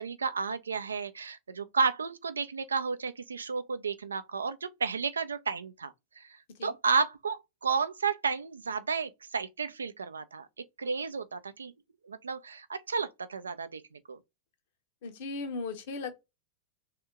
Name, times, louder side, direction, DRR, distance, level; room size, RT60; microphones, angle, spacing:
voice 1, 0.0-6.2 6.6-10.5 10.8-11.7 12.1-14.2, right 5 dB, 75° right, 0.5 m, -32 dB
voice 2, 15.0-16.3, left 4 dB, 55° left, 0.9 m, -37 dB
3.5 x 2.8 x 3.4 m
figure-of-eight pair, 90°, 0 cm